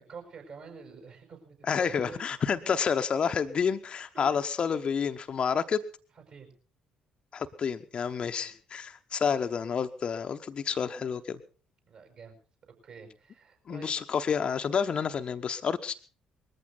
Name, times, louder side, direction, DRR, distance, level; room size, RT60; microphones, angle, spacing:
voice 1, 0.0-2.2 2.5-2.9 4.1-4.3 6.1-6.5 8.4-8.5 11.9-12.3 12.8-14.0, right 5 dB, 50° right, 4 dB, 5.9 m, -48 dB
voice 2, 1.7-5.8 7.3-11.4 13.7-16.0, left 6 dB, 40° left, 8 dB, 0.9 m, -29 dB
20.5 x 14.5 x 4.0 m, 0.39 s
figure-of-eight pair, 45°, 3 cm